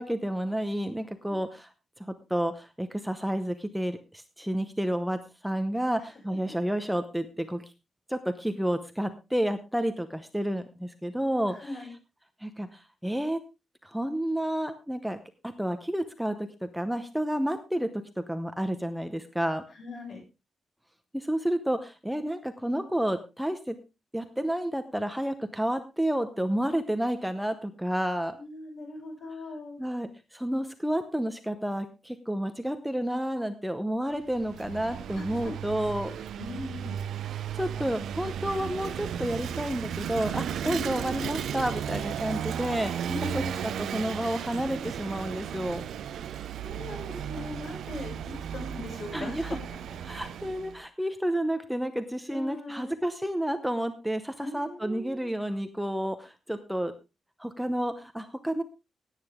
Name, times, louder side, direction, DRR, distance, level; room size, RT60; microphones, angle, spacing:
voice 1, 0.0-1.7 2.0-7.6 8.1-11.8 12.4-13.4 13.8-15.2 15.4-17.9 18.2-19.6 21.1-23.8 24.1-28.4 29.8-36.1 37.3-43.0 43.3-45.8 49.1-49.6 50.0-56.9 57.4-58.6, right 1 dB, ahead, 8 dB, 0.8 m, -30 dB
voice 2, 11.5-11.9 19.7-20.2 28.4-29.8 35.1-35.5 36.1-37.0 40.6-40.9 43.0-43.6 46.2-49.8 52.3-52.9 54.4-55.3, left 2 dB, 50° left, 1 dB, 6.8 m, -40 dB
Vehicle / Engine, 34.2-50.8, right 9 dB, 85° right, 0.7 m, -35 dB
17.5 x 9.1 x 3.6 m, 0.27 s
wide cardioid pair, 175°, 0 cm